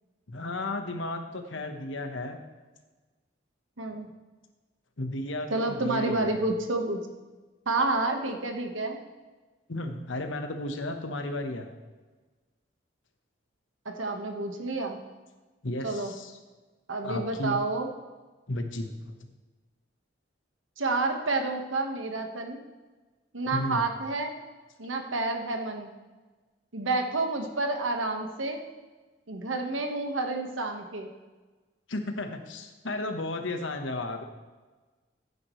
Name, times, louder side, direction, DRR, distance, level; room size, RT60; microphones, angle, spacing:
voice 1, 0.3-2.4 5.0-6.4 9.7-11.7 15.6-16.4 17.0-17.6 18.5-19.2 23.4-23.8 31.9-34.2, left 1 dB, 80° left, 6 dB, 1.2 m, -33 dB
voice 2, 3.8-4.1 5.5-7.0 7.7-9.0 13.8-15.0 15.8-16.1 16.9-17.9 20.8-22.6 23.3-24.3 24.8-25.9 26.7-28.6 29.3-31.1, right 2 dB, 85° right, 4 dB, 1.4 m, -29 dB
15.0 x 9.5 x 3.2 m, 1.3 s
head